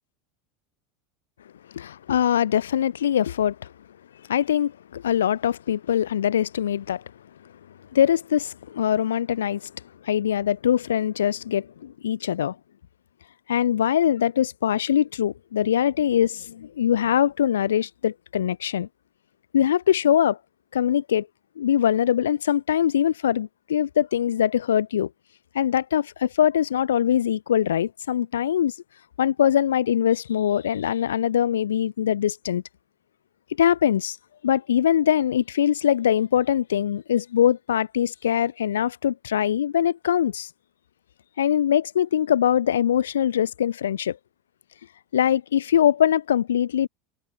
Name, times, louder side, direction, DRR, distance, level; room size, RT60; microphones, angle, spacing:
voice 1, 1.7-3.7 4.3-7.0 7.9-9.7 10.0-12.6 13.5-18.9 19.5-20.4 20.7-21.3 21.6-25.1 25.5-28.7 29.2-32.6 33.6-34.2 34.4-40.5 41.4-44.2 45.1-46.9, left 10 dB, 70° left, 5.3 m, -22 dB
figure-of-eight pair, 75°, 0 cm